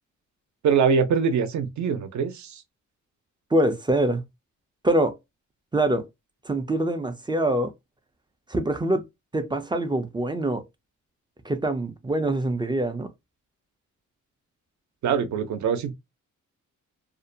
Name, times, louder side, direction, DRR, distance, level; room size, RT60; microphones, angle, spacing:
voice 1, 0.6-2.6 15.0-15.9, right 6 dB, 65° right, 0.6 m, -23 dB
voice 2, 3.5-4.2 4.8-5.2 5.7-6.1 6.5-7.7 8.5-9.0 9.3-10.6 11.4-13.1, right 1 dB, 15° right, 0.3 m, -24 dB
2.5 x 2.1 x 2.6 m
cardioid pair, 125°, 31 cm